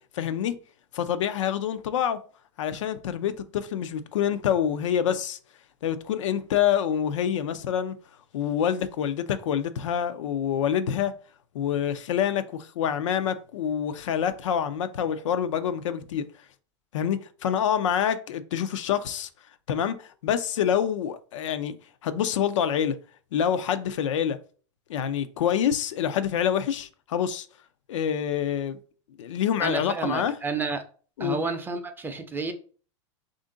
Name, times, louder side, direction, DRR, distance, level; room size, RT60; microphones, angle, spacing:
voice 1, 0.1-0.6 0.9-2.2 2.6-5.4 5.8-7.9 8.3-11.1 11.5-16.3 16.9-19.3 19.7-21.7 22.0-23.0 23.3-24.4 24.9-27.5 27.9-28.8 29.2-30.4 31.2-31.4, left 9 dB, 85° left, 0.5 m, -26 dB
voice 2, 29.6-30.8 31.2-32.5, right 4 dB, 15° right, 0.5 m, -30 dB
3.5 x 2.5 x 3.7 m
hypercardioid pair, 115°, 16 cm